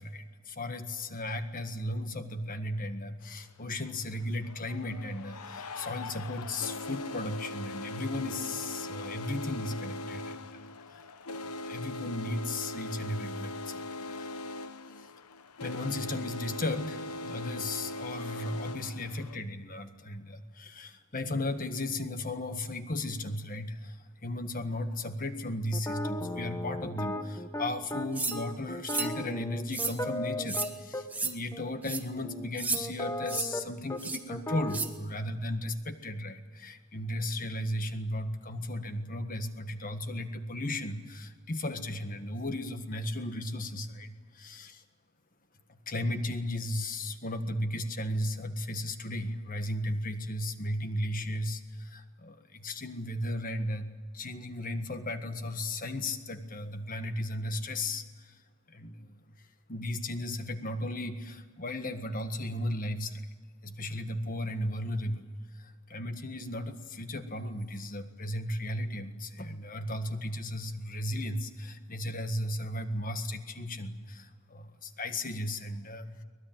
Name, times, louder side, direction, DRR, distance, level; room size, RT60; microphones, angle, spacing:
voice 1, 0.0-10.6 10.9-11.0 11.6-14.3 14.9-15.1 15.6-44.8 45.9-58.3 58.7-59.2 59.7-63.3 63.6-65.3 65.6-76.2, left 1 dB, 40° left, 8 dB, 1.6 m, -35 dB
sound 1, 3.2-3.3 4.3-19.4, left 2 dB, 90° left, 1.0 m, -40 dB
sound 2, 25.7-31.0 31.5-31.7 32.2-33.6 33.9-34.0 34.3-34.9, left 1 dB, 15° left, 1.1 m, -36 dB
sound 3, 28.2-28.4 28.9-29.1 29.7-30.0 30.5-30.7 31.1-31.3 31.8-32.0 32.6-32.8 33.3-33.5 34.0-34.2 34.7-34.9, right 3 dB, 5° right, 1.3 m, -32 dB
24.0 x 19.5 x 9.1 m, 1.4 s
head